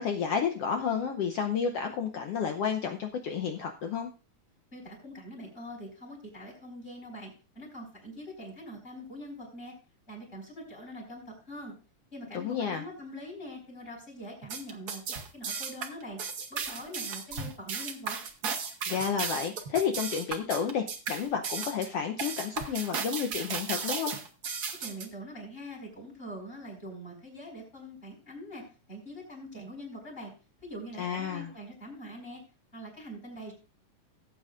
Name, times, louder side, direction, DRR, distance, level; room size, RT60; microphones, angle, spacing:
voice 1, 0.0-4.1 12.3-12.8 18.9-24.2 31.0-31.5, left 7 dB, 70° left, 5 dB, 1.5 m, -31 dB
voice 2, 4.7-9.8 10.1-11.7 12.1-16.2 16.5-18.2 24.8-30.3 30.6-32.4 32.7-33.5, equal, 15° left, -2 dB, 4.9 m, -43 dB
sound 1, 14.4-25.1, right 5 dB, 65° right, 0.9 m, -35 dB
18.0 x 8.6 x 2.5 m, 0.33 s
omnidirectional pair, 3.5 m